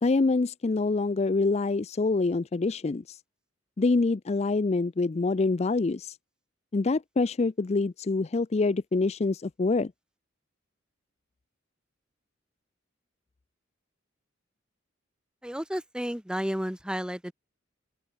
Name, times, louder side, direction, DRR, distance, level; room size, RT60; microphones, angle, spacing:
voice 1, 0.0-3.2 3.8-6.2 6.7-9.9, left 3 dB, 35° left, 0.4 m, -26 dB
voice 2, 15.4-17.3, equal, 5° right, 1.7 m, -32 dB
open air
head